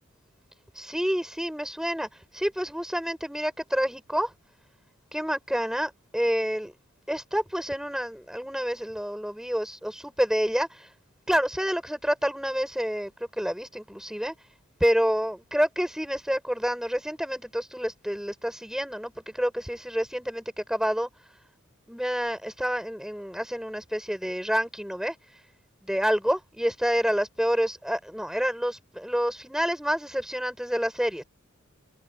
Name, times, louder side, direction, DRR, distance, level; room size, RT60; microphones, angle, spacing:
voice 1, 0.7-4.3 5.1-6.7 7.1-10.9 11.3-14.3 14.8-21.1 21.9-25.1 25.8-31.2, equal, 5° right, 6.7 m, -28 dB
head